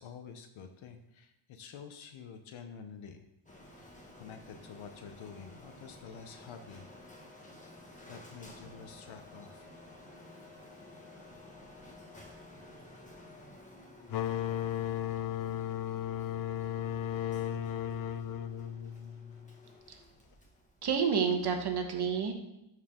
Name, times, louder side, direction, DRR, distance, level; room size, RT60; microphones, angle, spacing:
voice 1, 0.0-3.3 3.8-6.9 8.1-9.7, left 6 dB, 75° left, 7 dB, 0.9 m, -49 dB
Printer, 3.5-21.1, left 2 dB, 15° left, 1.7 m, -53 dB
sound 1, 14.1-19.5, left 10 dB, 45° left, 0.5 m, -35 dB
voice 2, 20.8-22.3, right 6 dB, 55° right, 4 dB, 1.4 m, -29 dB
13.0 x 4.7 x 3.7 m, 0.86 s
cardioid pair, 105°, 47 cm